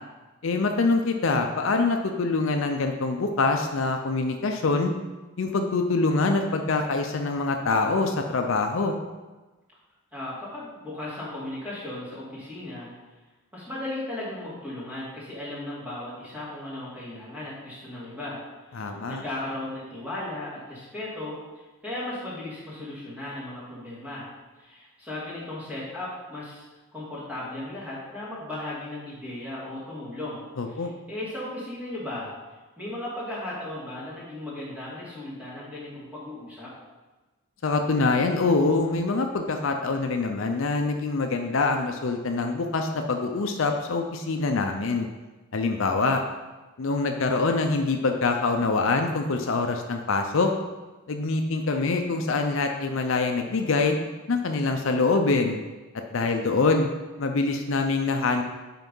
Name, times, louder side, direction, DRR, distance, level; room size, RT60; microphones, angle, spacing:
voice 1, 0.4-4.9 5.4-8.9 18.7-19.2 30.6-30.9 37.6-45.1 45.5-46.2 46.8-50.5 51.1-54.0 54.3-55.6 56.1-56.9 57.2-58.4, left 3 dB, 65° left, 5 dB, 0.5 m, -24 dB
voice 2, 10.1-12.9 13.5-18.4 18.7-24.3 24.6-26.6 26.9-32.3 32.8-36.7, left 1 dB, 5° right, -8 dB, 2.3 m, -36 dB
5.8 x 4.6 x 5.4 m, 1.2 s
head